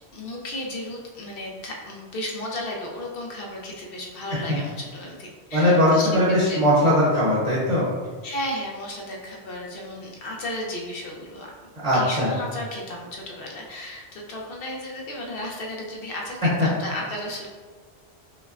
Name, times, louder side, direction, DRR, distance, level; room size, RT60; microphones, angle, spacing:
voice 1, 0.1-6.6 8.2-11.5 11.9-17.5, left 1 dB, 60° left, -1 dB, 0.8 m, -34 dB
voice 2, 5.5-7.9 11.8-12.3 16.6-16.7, left 1 dB, 35° right, -7 dB, 0.9 m, -19 dB
5.3 x 2.1 x 2.4 m, 1.4 s
omnidirectional pair, 1.2 m